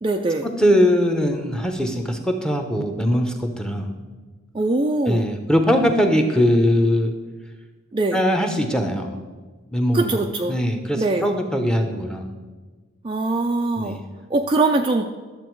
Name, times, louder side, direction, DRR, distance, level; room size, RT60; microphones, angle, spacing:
voice 1, 0.0-0.5 4.5-5.3 7.9-8.2 9.9-10.6 11.0-11.3 13.0-14.0 14.3-15.1, right 2 dB, 25° right, 4 dB, 0.3 m, -22 dB
voice 2, 0.6-3.9 5.0-7.1 8.1-9.1 9.7-12.3 13.8-14.0, equal, 5° left, 5 dB, 0.8 m, -21 dB
11.5 x 7.2 x 4.6 m, 1.3 s
head